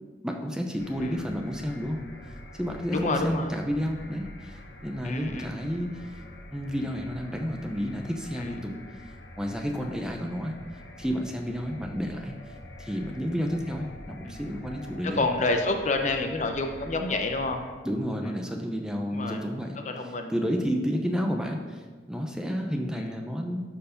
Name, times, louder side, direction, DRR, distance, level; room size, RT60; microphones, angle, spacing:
voice 1, 0.2-2.0 2.5-5.9 6.5-8.7 9.4-10.5 11.0-12.3 12.8-15.3 17.8-19.8 20.3-23.6, equal, 5° right, 2 dB, 0.7 m, -31 dB
sound 1, 0.8-17.7, left 1 dB, 70° left, 1.2 m, -46 dB
voice 2, 2.9-3.5 5.0-5.6 8.4-8.6 14.2-14.5 15.0-17.6 18.2-18.4 19.1-19.4 19.8-20.3 22.9-23.2, left 2 dB, 40° left, 5 dB, 0.8 m, -29 dB
12.5 x 4.7 x 5.2 m, 1.4 s
head